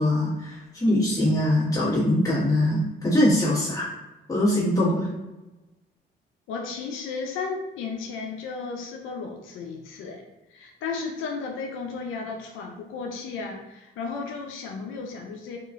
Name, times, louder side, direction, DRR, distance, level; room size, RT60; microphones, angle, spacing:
voice 1, 0.0-3.9 4.3-5.1, left 1 dB, 15° left, -9 dB, 1.5 m, -22 dB
voice 2, 6.5-10.2 10.5-15.6, left 4 dB, 85° left, 2 dB, 0.4 m, -34 dB
2.9 x 2.4 x 2.4 m, 1.1 s
cardioid pair, 90°, 20 cm